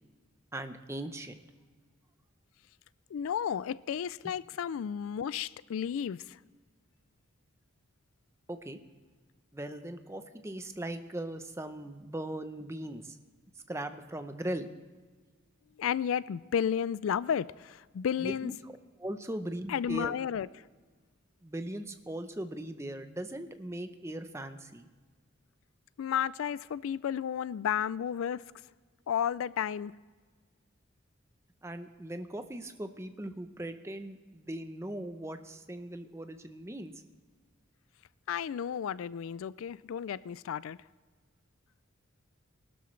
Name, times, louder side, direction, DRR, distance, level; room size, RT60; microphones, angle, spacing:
voice 1, 0.5-1.4 8.5-8.8 9.5-13.2 13.7-14.7 18.2-18.7 19.0-20.1 21.4-24.9 31.6-36.9, right 1 dB, 15° right, 0.7 m, -39 dB
voice 2, 3.1-6.4 15.8-18.5 19.7-20.5 26.0-28.4 29.1-29.9 38.3-40.8, left 8 dB, 80° left, 0.3 m, -32 dB
20.5 x 12.5 x 3.2 m
head